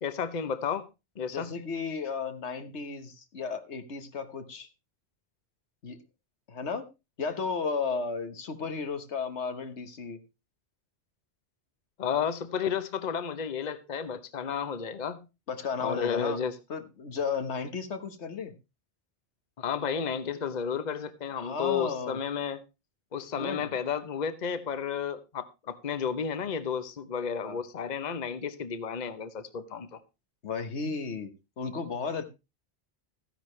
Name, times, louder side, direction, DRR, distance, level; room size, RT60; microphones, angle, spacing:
voice 1, 0.0-0.9 1.2-1.5 12.0-15.2 15.8-16.5 19.6-22.6 23.1-30.0, left 7 dB, 45° left, 0.9 m, -32 dB
voice 2, 1.3-4.7 5.8-6.0 6.5-6.9 7.2-10.2 15.5-16.4 16.7-18.5 21.4-22.2 23.4-23.7 27.4-27.6 30.4-31.3 31.6-32.2, left 5 dB, 85° left, 1.6 m, -34 dB
14.0 x 10.5 x 3.2 m
omnidirectional pair, 1.1 m